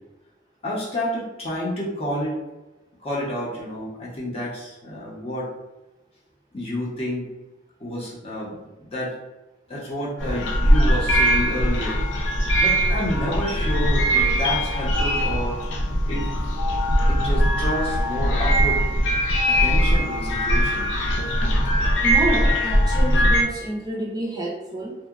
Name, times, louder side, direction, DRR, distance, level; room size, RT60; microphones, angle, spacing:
voice 1, 0.6-2.4 3.0-5.5 6.5-7.3 7.8-9.1 9.7-12.0 12.6-15.6 16.1-16.3 17.1-18.8 19.5-20.9, equal, 35° left, -6 dB, 0.7 m, -29 dB
sound 1, 10.2-23.4, equal, 85° left, 0.5 m, -21 dB
voice 2, 22.0-25.0, right 1 dB, 20° right, -5 dB, 0.4 m, -28 dB
2.8 x 2.1 x 2.3 m, 1.0 s
head